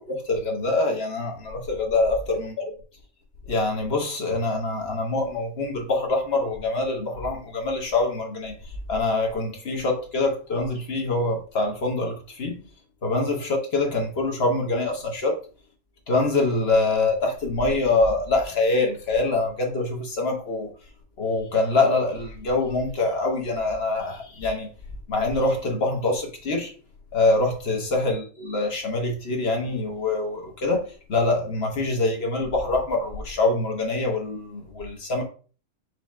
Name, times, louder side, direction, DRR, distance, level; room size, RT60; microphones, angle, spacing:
voice 1, 0.1-2.6 3.5-12.6 13.0-15.4 16.1-20.7 21.2-24.7 25.1-26.7 27.1-35.2, left 2 dB, 50° left, 1.2 m, -25 dB
4.8 x 2.3 x 4.2 m
omnidirectional pair, 1.5 m